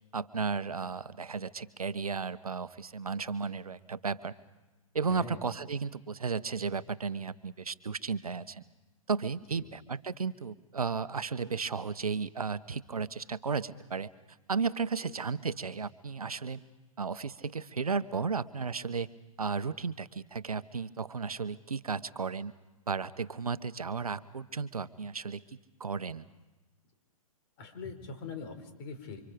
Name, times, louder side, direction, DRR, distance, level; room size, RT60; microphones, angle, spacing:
voice 1, 0.1-4.3 4.9-8.6 9.1-14.1 14.5-16.6 17.0-19.1 19.4-22.5 22.9-26.2, right 5 dB, 90° right, 14 dB, 1.1 m, -34 dB
voice 2, 5.1-5.5 9.5-9.7 15.0-15.2 27.6-29.2, left 4 dB, 45° left, 8 dB, 4.6 m, -43 dB
30.0 x 25.5 x 5.1 m, 1.1 s
hypercardioid pair, 125°, 18 cm